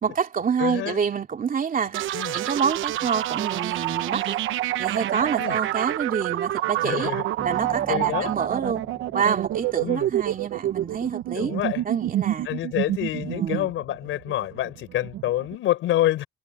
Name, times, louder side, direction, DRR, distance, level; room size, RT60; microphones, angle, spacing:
voice 1, 0.0-2.0 2.3-4.4 4.8-7.1 7.4-8.8 9.1-11.5 11.8-12.5 13.2-13.7, right 7 dB, 45° right, 2.9 m, -27 dB
voice 2, 0.6-1.0 2.1-2.4 5.4-5.6 6.8-7.2 7.6-8.3 9.8-10.1 11.3-11.8 12.4-16.3, left 14 dB, 85° left, 4.8 m, -27 dB
sound 1, 1.9-15.5, right 14 dB, 90° right, 1.1 m, -28 dB
Bass guitar, 7.4-10.9, right 2 dB, 15° right, 6.2 m, -44 dB
cardioid pair, 90°, 20 cm